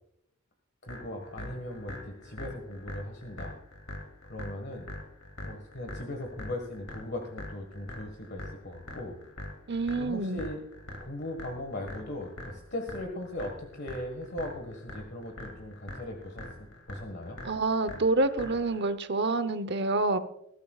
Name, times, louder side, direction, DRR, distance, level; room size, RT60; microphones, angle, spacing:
voice 1, 0.8-3.5 4.2-4.9 5.4-9.2 9.9-10.6 11.0-17.4, left 1 dB, 55° left, 3 dB, 1.6 m, -39 dB
sound 1, 0.9-18.9, left 1 dB, 85° left, 2.9 m, -44 dB
voice 2, 9.7-10.4 17.4-20.2, right 2 dB, 55° right, 12 dB, 0.9 m, -27 dB
21.0 x 13.0 x 2.4 m, 0.79 s
head